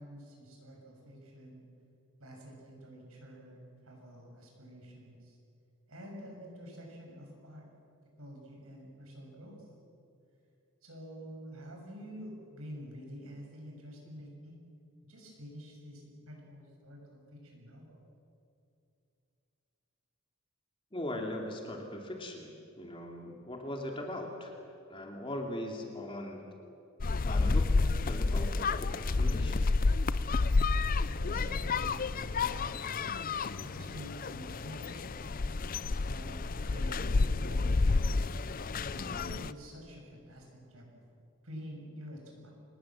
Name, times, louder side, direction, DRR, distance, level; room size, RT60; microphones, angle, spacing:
voice 1, 0.0-1.6 2.2-3.6 3.8-5.4 5.9-7.7 8.2-9.6 10.8-14.6 15.0-18.0 31.2-33.1 33.6-35.6 36.0-38.2 38.9-40.5 40.7-40.9 41.4-42.5, equal, 70° right, 0 dB, 7.0 m, -48 dB
voice 2, 20.9-22.5 22.8-24.5 24.9-26.4 27.2-27.7 28.0-29.6, left 1 dB, 25° left, 2 dB, 2.7 m, -39 dB
sound 1, 27.0-39.5, left 3 dB, 40° left, 0.5 m, -30 dB
26.0 x 20.0 x 7.6 m, 2.6 s
head